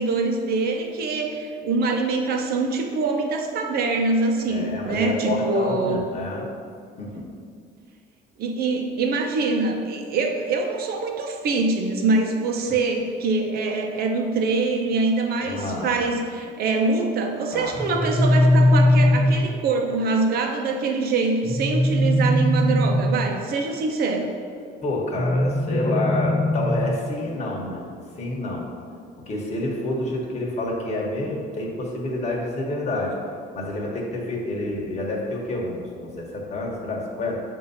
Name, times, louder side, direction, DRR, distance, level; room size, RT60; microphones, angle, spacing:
voice 1, 0.0-6.0 8.4-24.3, right 3 dB, 65° right, 2 dB, 0.8 m, -24 dB
voice 2, 4.5-6.5 7.0-7.2 15.4-15.9 17.5-17.8 24.8-27.9 28.2-28.7 29.3-33.1 33.5-37.4, left 2 dB, 40° left, -2 dB, 1.3 m, -28 dB
sound 1, 17.7-19.7 21.4-23.4 25.2-27.1, left 1 dB, 15° left, 0.9 m, -20 dB
7.0 x 2.8 x 5.6 m, 2.3 s
cardioid pair, 110°, 17 cm